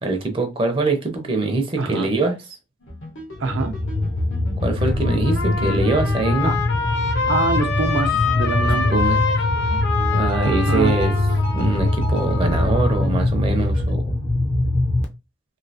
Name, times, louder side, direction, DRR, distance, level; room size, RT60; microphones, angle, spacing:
voice 1, 0.0-2.6 4.6-6.5 8.6-9.2 10.1-11.1 11.5-14.2, right 3 dB, 30° right, 0.5 m, -23 dB
voice 2, 1.8-2.1 3.4-3.8 6.4-6.5 7.3-8.9 10.4-10.9, right 3 dB, 80° right, 0.6 m, -25 dB
sound 1, 2.8-7.1 7.8-13.9, right 1 dB, 90° left, 1.3 m, -37 dB
sound 2, 3.4-15.0, left 2 dB, 35° left, 0.5 m, -22 dB
Trumpet, 4.6-13.1, left 4 dB, 65° left, 1.0 m, -26 dB
3.0 x 2.7 x 2.7 m
head